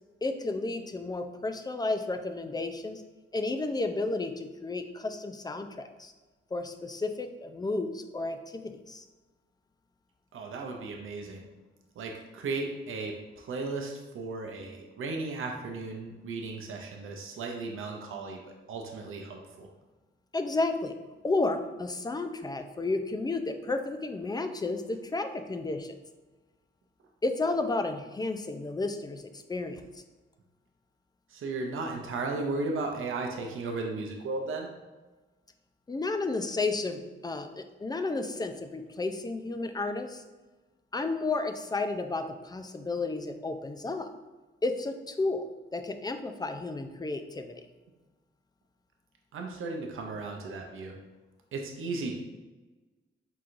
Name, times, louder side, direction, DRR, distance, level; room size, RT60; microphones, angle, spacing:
voice 1, 0.2-3.0 3.3-6.1 6.5-9.0 20.3-21.0 21.2-25.9 27.2-29.8 35.9-40.2 40.9-44.1 44.6-47.6, left 3 dB, 20° left, 7 dB, 0.4 m, -32 dB
voice 2, 10.3-11.5 12.0-18.4 18.7-19.7 31.3-34.7 49.3-51.0 51.5-52.1, right 3 dB, 80° right, 2 dB, 0.6 m, -35 dB
4.4 x 3.8 x 2.5 m, 1.2 s
cardioid pair, 80°, 21 cm